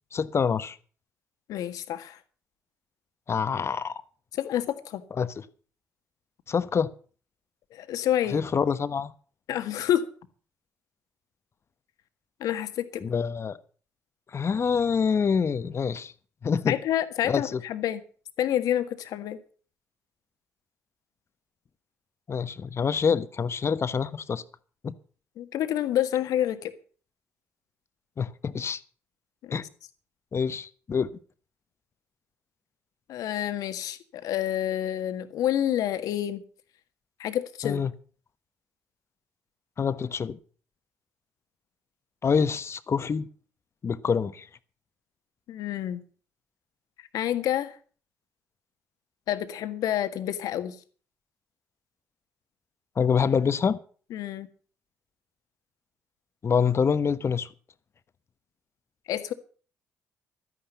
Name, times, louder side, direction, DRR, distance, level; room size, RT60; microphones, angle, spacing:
voice 1, 0.1-0.8 3.3-4.0 5.2-5.4 6.5-6.9 8.3-9.1 13.0-13.6 14.3-16.1 16.4-16.7 17.3-17.6 22.3-24.4 24.8-24.9 28.2-28.8 29.5-29.6 30.3-31.1 37.6-37.9 39.8-40.4 42.2-43.3 43.8-44.5 53.0-53.8 56.4-57.5, left 6 dB, 45° left, 1.2 m, -26 dB
voice 2, 1.5-2.2 4.3-5.0 7.7-8.4 9.5-10.1 12.4-13.0 16.7-18.0 18.4-19.4 25.4-26.7 29.4-29.5 33.1-36.4 37.2-37.8 45.5-46.0 47.1-47.7 49.3-50.8 54.1-54.5 59.1-59.3, left 11 dB, 70° left, 1.6 m, -28 dB
13.0 x 10.5 x 7.0 m
hypercardioid pair, 50°, 6 cm